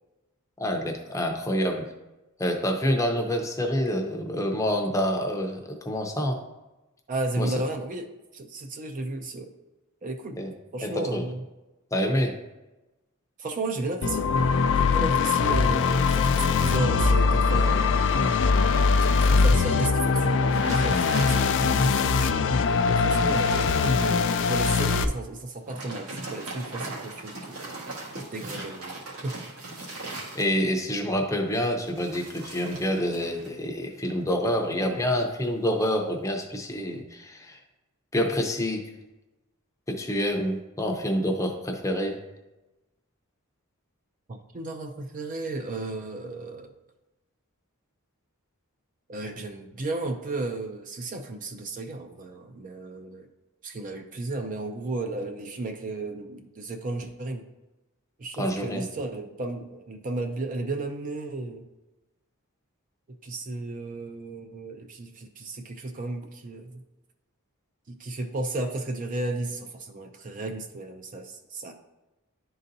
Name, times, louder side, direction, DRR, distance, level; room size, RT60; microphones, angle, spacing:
voice 1, 0.6-1.8 2.4-6.4 7.4-7.5 10.4-10.5 10.8-11.2 11.9-12.4 30.3-37.6 38.1-38.8 39.9-42.2 58.4-58.9, equal, 15° left, 2 dB, 0.6 m, -27 dB
voice 2, 7.1-8.1 8.3-9.5 10.0-10.4 10.7-11.4 13.4-14.3 14.7-18.0 19.0-27.6 28.2-29.3 44.3-46.7 49.1-53.3 53.6-57.5 58.2-61.7 63.2-66.8 67.9-71.7, right 2 dB, 35° right, 5 dB, 0.5 m, -34 dB
sound 1, 14.0-25.0, left 4 dB, 55° left, 0.4 m, -22 dB
sound 2, 20.5-21.8 22.3-22.4 22.9-24.0 25.5-30.8 31.8-33.5 33.8-34.2, right 2 dB, 75° right, 1.5 m, -38 dB
10.5 x 3.9 x 2.7 m, 1.0 s
head